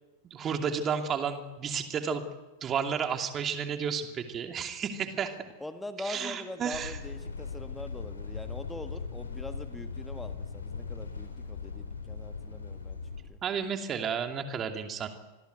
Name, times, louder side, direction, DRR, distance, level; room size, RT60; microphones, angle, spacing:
voice 1, 0.3-2.2 2.6-5.3 6.0-7.0 13.4-15.1, right 7 dB, 25° right, 5 dB, 2.6 m, -32 dB
voice 2, 5.6-13.0 13.3-13.4, left 1 dB, 5° left, 9 dB, 1.5 m, -43 dB
sound 1, 6.7-13.2, left 5 dB, 75° left, 4.2 m, -39 dB
26.5 x 20.5 x 8.1 m, 1.2 s
figure-of-eight pair, 90°, 0 cm